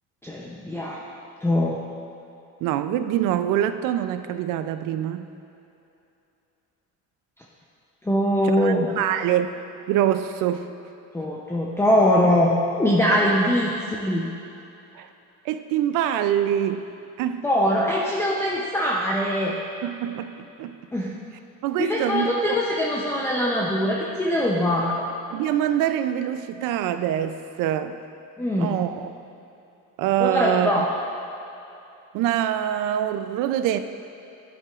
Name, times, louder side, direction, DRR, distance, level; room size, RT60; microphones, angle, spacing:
voice 1, 0.2-1.0 1.4-1.8 8.0-9.0 11.1-14.2 17.4-19.5 20.9-21.1 21.8-25.0 28.4-28.8 30.2-30.9, left 1 dB, 5° left, -4 dB, 0.6 m, -22 dB
voice 2, 2.6-5.3 8.4-9.5 9.9-10.7 15.0-15.1 15.4-16.9 17.2-17.4 19.8-20.3 20.6-20.8 21.6-22.6 25.3-28.0 28.6-29.1 30.0-30.8 32.1-33.8, right 11 dB, 70° right, 10 dB, 0.5 m, -24 dB
10.5 x 7.7 x 2.4 m, 2.8 s
cardioid pair, 115°, 34 cm